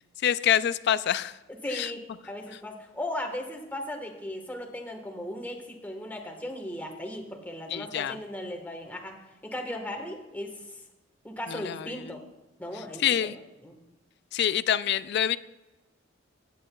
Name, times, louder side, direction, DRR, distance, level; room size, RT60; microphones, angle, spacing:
voice 1, 0.2-1.3 1.7-1.9 7.7-8.2 11.5-12.1 13.0-13.4 14.3-15.4, left 10 dB, 60° left, 15 dB, 0.4 m, -26 dB
voice 2, 1.5-10.8 11.2-12.2 12.6-13.3 13.6-13.8, left 1 dB, 10° left, 2 dB, 1.4 m, -37 dB
17.0 x 9.0 x 2.3 m, 1.0 s
head